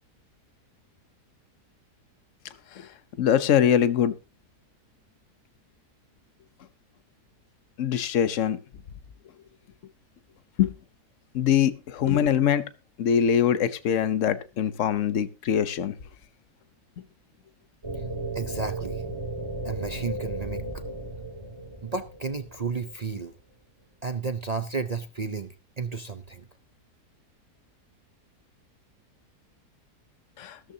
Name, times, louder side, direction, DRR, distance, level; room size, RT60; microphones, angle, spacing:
voice 1, 3.2-4.1 7.8-8.6 10.6-10.7 11.3-12.7 13.0-15.9 30.4-30.6, left 9 dB, 55° left, 1.1 m, -23 dB
sound 1, 17.8-22.9, right 2 dB, 15° right, 1.9 m, -35 dB
voice 2, 18.3-19.0 19.6-20.8 21.8-23.3 24.0-26.5, right 5 dB, 45° right, 0.5 m, -32 dB
15.0 x 13.0 x 2.8 m
omnidirectional pair, 1.7 m